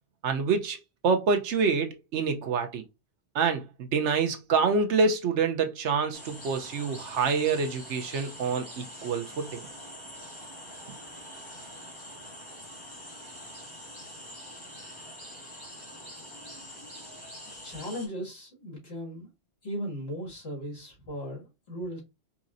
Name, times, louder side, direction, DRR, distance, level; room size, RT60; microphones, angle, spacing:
voice 1, 0.2-2.8 3.3-9.6, right 5 dB, 75° right, 1.0 m, -27 dB
sound 1, 6.1-18.1, equal, 20° left, 1.7 m, -44 dB
voice 2, 17.4-19.3 19.6-22.0, equal, 55° left, 2.3 m, -37 dB
4.9 x 2.9 x 2.5 m
omnidirectional pair, 1.2 m